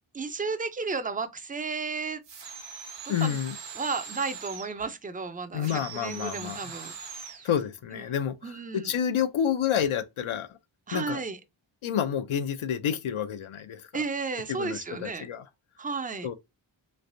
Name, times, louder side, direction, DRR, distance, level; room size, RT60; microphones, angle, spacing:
voice 1, 0.1-2.2 3.2-3.4 3.8-7.5 7.9-8.1 8.4-8.9 10.9-11.4 13.9-15.3 15.8-16.3, right 4 dB, 20° right, 0.4 m, -33 dB
sound 1, 2.2-4.8 5.6-7.5, right 6 dB, 65° right, 0.9 m, -42 dB
voice 2, 3.1-3.5 5.5-6.8 7.4-10.6 10.9-11.2 11.8-14.0 14.5-15.4 16.2-16.3, left 9 dB, 80° left, 0.6 m, -29 dB
3.2 x 3.2 x 2.6 m
wide cardioid pair, 115°, 48 cm